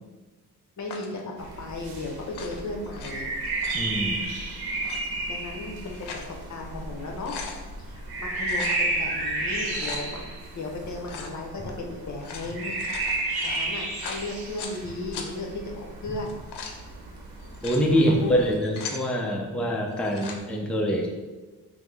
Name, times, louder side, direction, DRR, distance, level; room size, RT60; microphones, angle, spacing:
voice 1, 0.8-3.3 4.0-4.4 5.3-7.4 7.8-12.8 13.4-16.4 18.1-18.3, left 2 dB, 45° left, 1 dB, 0.7 m, -36 dB
sound 1, 0.9-1.2 2.2-3.1 3.4-3.9 4.7-5.0 5.7-6.3 6.7-6.8 7.1-7.6 8.4-8.8 9.5-10.0 11.0-11.4 12.1-14.8 15.1-15.3 16.2-16.8 17.4-17.8 18.4-19.0 19.9-20.4, left 5 dB, 85° left, 0.6 m, -39 dB
sound 2, 1.4-18.6, right 2 dB, 70° right, 0.8 m, -33 dB
voice 2, 3.7-4.2 17.6-21.1, equal, 5° left, 0 dB, 0.4 m, -24 dB
5.4 x 2.0 x 3.2 m, 1.2 s
cardioid pair, 105°, 39 cm